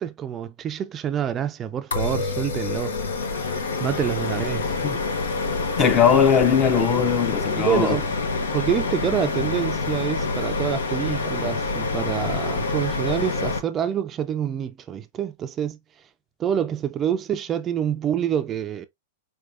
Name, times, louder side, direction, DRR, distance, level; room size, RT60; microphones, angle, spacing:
voice 1, 0.0-3.0 3.5-4.7 5.3-5.4 7.6-8.0 8.5-15.8 16.4-18.9, right 9 dB, 25° right, 0.3 m, -27 dB
sound 1, 1.9-13.6, left 3 dB, 90° left, 0.7 m, -27 dB
voice 2, 5.8-8.0, left 7 dB, 30° left, 0.6 m, -19 dB
4.5 x 2.3 x 2.4 m
hypercardioid pair, 130°, 0 cm